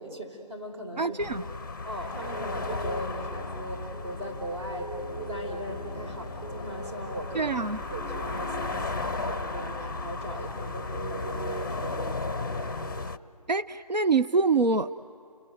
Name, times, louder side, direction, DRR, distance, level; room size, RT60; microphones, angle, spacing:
voice 1, 0.0-1.4 1.8-7.6 7.9-12.8, right 1 dB, 40° right, 2 dB, 4.7 m, -39 dB
voice 2, 1.0-1.4 7.3-7.8 13.5-14.9, right 4 dB, 85° right, 11 dB, 0.7 m, -25 dB
sound 1, 1.2-13.2, left 3 dB, 30° left, 0.6 m, -35 dB
sound 2, 2.1-13.1, right 1 dB, 15° right, 0.8 m, -40 dB
30.0 x 20.5 x 9.3 m, 2.4 s
figure-of-eight pair, 160°, 21 cm